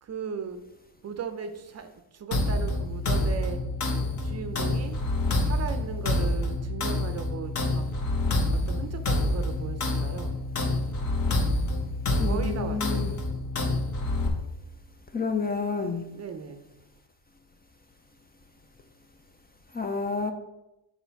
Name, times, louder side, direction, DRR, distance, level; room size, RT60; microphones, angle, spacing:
voice 1, 0.0-0.6 1.0-3.6 4.2-5.0 5.4-7.8 8.5-10.4 12.2-13.2 16.0-16.7, right 6 dB, 35° right, 9 dB, 0.6 m, -37 dB
sound 1, 2.3-14.3, left 2 dB, 40° left, 1.2 m, -27 dB
voice 2, 12.2-13.1 15.1-16.0 19.7-20.3, left 4 dB, 20° left, 6 dB, 0.5 m, -29 dB
6.9 x 4.4 x 4.5 m, 0.94 s
cardioid pair, 135°, 44 cm